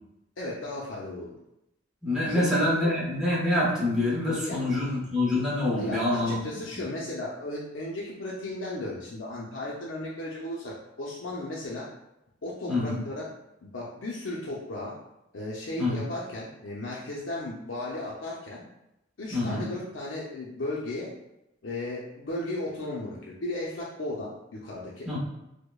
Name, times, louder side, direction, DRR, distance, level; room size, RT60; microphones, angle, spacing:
voice 1, 0.4-1.4 2.3-2.5 2.8-3.0 4.4-4.6 5.8-11.9 12.4-13.3 13.6-14.9 15.3-18.6 19.2-21.1 21.6-25.1, left 1 dB, 80° left, -5 dB, 0.6 m, -35 dB
voice 2, 2.0-6.6 12.7-13.0 15.8-16.0 19.3-19.7 25.1-25.2, left 1 dB, 5° right, -7 dB, 0.9 m, -26 dB
4.8 x 2.1 x 2.3 m, 0.87 s
head